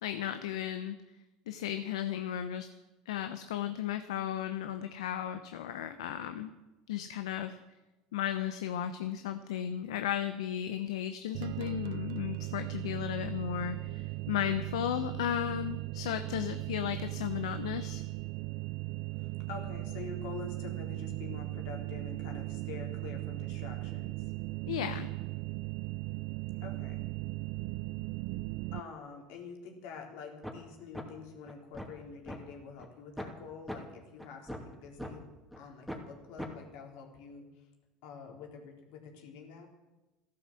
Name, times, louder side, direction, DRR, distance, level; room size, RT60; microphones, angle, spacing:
voice 1, 0.0-1.0 1.5-2.7 3.1-6.5 6.9-7.6 8.1-18.0 24.7-25.1, left 10 dB, 85° left, 9 dB, 0.9 m, -35 dB
sound 1, 11.3-28.8, right 20 dB, 70° right, 0.5 m, -38 dB
voice 2, 19.1-24.2 26.6-27.1 28.7-35.3 35.6-37.5 38.0-39.7, left 5 dB, 70° left, 2 dB, 3.9 m, -46 dB
sound 2, 30.4-30.6 30.9-31.0 31.5-32.4 32.8-32.9 33.2-33.3 33.7-33.8 34.2-35.1 35.5-35.6 35.9-36.1 36.4-36.5, equal, 5° left, 2.7 m, -40 dB
14.5 x 12.0 x 7.6 m, 1.1 s
supercardioid pair, 95°, 3 cm